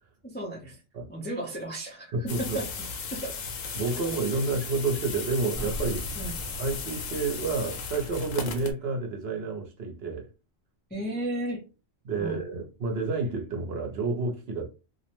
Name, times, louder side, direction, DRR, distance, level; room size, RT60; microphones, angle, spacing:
voice 1, 0.2-0.8 1.1-2.7 3.1-3.4 6.1-6.3 10.9-11.7 12.2-12.4, right 1 dB, 15° left, 0.3 m, -34 dB
voice 2, 2.1-2.6 3.7-6.2 6.6-10.3 12.0-14.7, right 3 dB, 60° right, 0.8 m, -30 dB
sound 1, 2.3-8.7, left 5 dB, 85° left, 1.0 m, -36 dB
sound 2, 5.5-8.4 8.7-8.8, equal, 30° right, 1.0 m, -40 dB
2.5 x 2.0 x 2.9 m
omnidirectional pair, 1.3 m